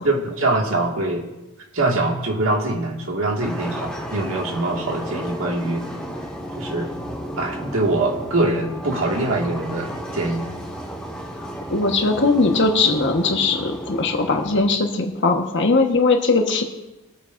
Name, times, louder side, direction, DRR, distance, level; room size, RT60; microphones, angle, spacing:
voice 1, 0.0-1.2 1.7-5.8 6.6-6.9 7.4-10.5, right 2 dB, 65° right, 0 dB, 2.1 m, -23 dB
sound 1, 3.4-14.6, equal, 5° left, 1.7 m, -33 dB
voice 2, 11.4-16.6, left 3 dB, 60° left, 3 dB, 1.4 m, -20 dB
23.0 x 9.0 x 2.6 m, 1.1 s
head